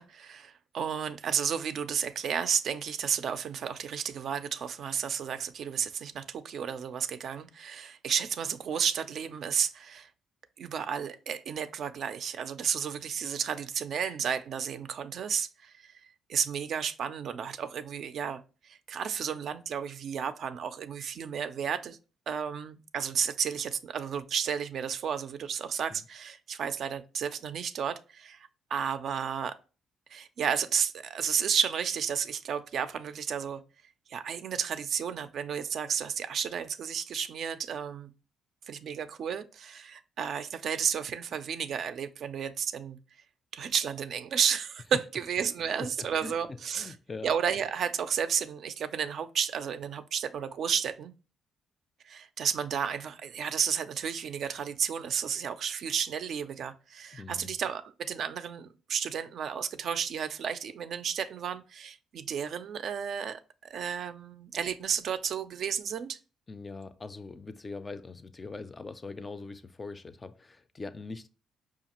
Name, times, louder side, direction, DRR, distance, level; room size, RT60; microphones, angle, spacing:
voice 1, 0.0-10.1 10.6-15.9 16.3-22.0 22.3-28.4 28.7-29.6 30.1-33.6 34.1-38.1 38.7-43.0 43.5-46.9 47.2-51.1 52.1-63.4 63.7-66.2, right 7 dB, 65° right, 0.3 m, -32 dB
voice 2, 45.8-47.3 57.1-57.5 66.5-71.3, left 3 dB, 30° left, 0.3 m, -42 dB
5.0 x 2.3 x 2.8 m
cardioid pair, 90°, 0 cm